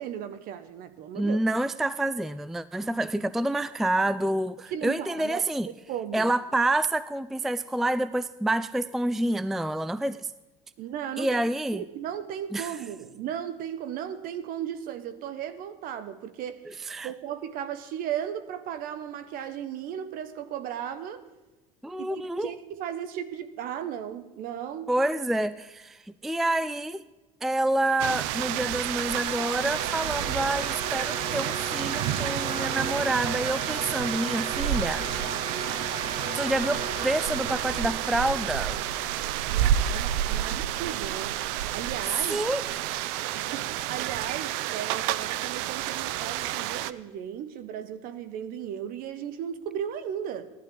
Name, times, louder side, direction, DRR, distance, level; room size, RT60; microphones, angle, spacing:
voice 1, 0.0-1.4 4.7-5.4 5.9-6.3 10.8-11.4 11.7-16.6 17.0-21.2 22.0-24.9 39.5-41.4 41.7-42.5 43.3-50.5, right 9 dB, 65° right, 13 dB, 1.0 m, -36 dB
voice 2, 1.2-5.7 6.1-10.3 11.2-11.8 12.5-12.8 16.9-17.1 21.8-22.5 24.9-27.0 27.4-35.1 36.3-38.8 42.3-42.6, right 1 dB, ahead, 16 dB, 0.3 m, -28 dB
sound 1, 28.0-46.9, right 12 dB, 80° right, 0.6 m, -30 dB
sound 2, 29.1-41.3, right 1 dB, 30° right, 2.3 m, -38 dB
16.5 x 11.5 x 3.8 m, 1.1 s
supercardioid pair, 110°, 16 cm